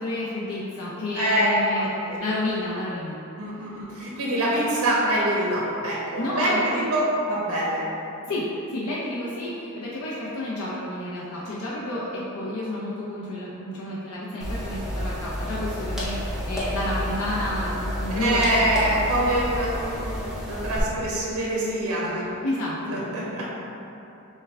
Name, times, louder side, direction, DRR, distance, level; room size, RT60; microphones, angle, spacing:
voice 1, 0.0-1.9 2.2-3.2 3.5-3.7 6.2-6.8 8.3-8.4 8.7-18.4 22.0-22.2 22.4-22.8, left 1 dB, 90° left, -7 dB, 0.7 m, -30 dB
voice 2, 1.1-1.5 1.7-2.2 3.4-7.9 18.1-22.3 22.8-23.4, right 1 dB, 80° right, -5 dB, 0.8 m, -25 dB
sound 1, 14.4-20.8, equal, ahead, 0.7 m, -30 dB
5.6 x 2.3 x 3.4 m, 2.9 s
head